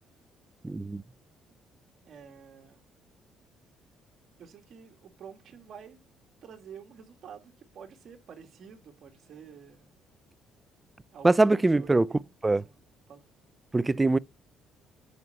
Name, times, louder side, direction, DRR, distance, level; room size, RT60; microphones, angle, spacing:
voice 1, 0.6-1.0 11.2-12.1 12.4-12.6 13.7-14.2, right 2 dB, 15° right, 0.4 m, -22 dB
voice 2, 2.0-2.8 4.4-6.0 6.4-9.9 11.1-12.8 13.1-13.2, right 7 dB, 60° right, 2.2 m, -49 dB
9.4 x 5.7 x 5.6 m
cardioid pair, 90°, 0 cm